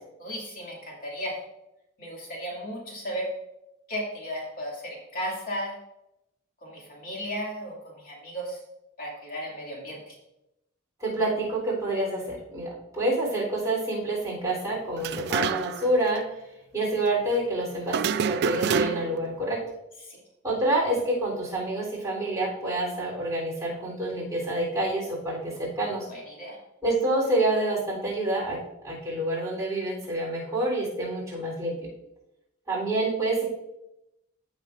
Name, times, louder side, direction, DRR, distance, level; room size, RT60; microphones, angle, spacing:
voice 1, 0.2-1.4 2.0-3.3 3.9-5.7 6.6-8.6 9.0-10.2 20.0-20.2 26.1-26.6, equal, 40° left, -3 dB, 2.4 m, -35 dB
voice 2, 11.0-16.2 16.7-19.6 20.4-26.1 26.8-28.6 28.8-31.7 32.7-33.5, right 1 dB, 15° right, -4 dB, 3.5 m, -27 dB
sound 1, 15.0-15.9 16.2-16.3 17.9-19.3, right 6 dB, 50° right, 0.3 m, -27 dB
15.0 x 6.4 x 2.5 m, 0.87 s
head